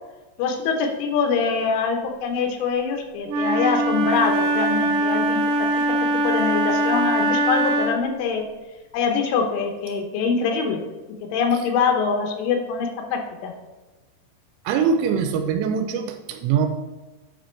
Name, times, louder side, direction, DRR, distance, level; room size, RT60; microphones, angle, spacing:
voice 1, 0.4-5.7 6.0-8.4 8.9-10.8 11.2-13.5, left 5 dB, 85° left, 4 dB, 3.5 m, -24 dB
Wind instrument woodwind instrument, 3.3-8.1, right 1 dB, 70° right, 2.5 m, -22 dB
voice 2, 14.7-16.7, right 6 dB, 90° right, 6 dB, 3.1 m, -22 dB
9.5 x 5.2 x 4.4 m, 1.2 s
omnidirectional pair, 5.5 m